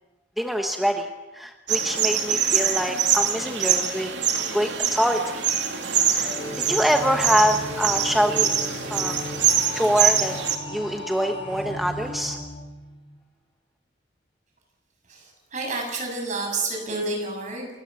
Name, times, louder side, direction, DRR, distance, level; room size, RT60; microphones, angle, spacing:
voice 1, 0.4-1.1 1.3-4.1 4.5-5.2 6.1-8.5 8.9-9.2 9.7-10.3 10.7-12.4, equal, ahead, 4 dB, 1.1 m, -24 dB
sound 1, 1.7-10.6, right 8 dB, 75° right, 2.8 m, -24 dB
sound 2, 6.2-13.2, left 1 dB, 30° left, 6.0 m, -36 dB
voice 2, 15.1-17.7, right 2 dB, 45° right, 1 dB, 7.6 m, -29 dB
29.0 x 14.0 x 8.2 m, 1.1 s
head